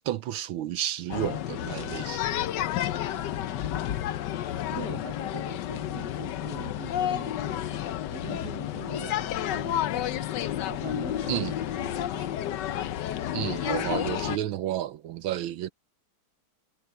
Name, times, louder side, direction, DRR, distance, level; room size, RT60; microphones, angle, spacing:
voice 1, 0.0-2.2 11.3-11.6 13.3-15.7, right 12 dB, 75° right, 1.5 m, -31 dB
sound 1, 1.1-14.4, left 11 dB, 65° left, 1.2 m, -31 dB
voice 2, 2.8-4.1 4.7-10.3 10.7-12.5, right 6 dB, 50° right, 2.8 m, -44 dB
omnidirectional pair, 2.4 m